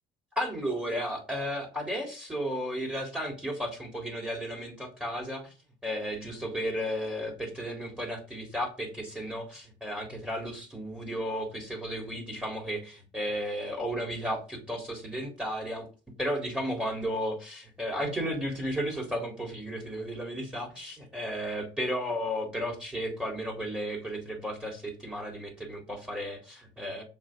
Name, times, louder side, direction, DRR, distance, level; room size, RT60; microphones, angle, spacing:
voice 1, 0.4-5.5 5.8-15.9 16.2-27.0, equal, 5° right, -1 dB, 3.8 m, -34 dB
8.0 x 7.2 x 3.9 m, 0.33 s
cardioid pair, 110°, 17 cm